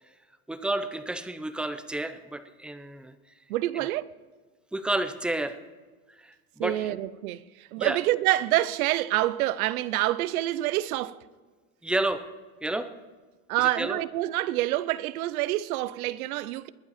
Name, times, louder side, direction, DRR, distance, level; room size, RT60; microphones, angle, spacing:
voice 1, 0.5-3.1 4.7-5.6 6.2-7.0 7.8-8.0 11.8-12.2 12.6-12.9 13.6-14.0, right 1 dB, ahead, 0.5 m, -30 dB
voice 2, 3.5-4.1 6.6-7.5 7.7-11.2 13.5-16.7, right 16 dB, 80° right, 0.8 m, -27 dB
21.0 x 7.9 x 4.2 m
supercardioid pair, 135°, 43 cm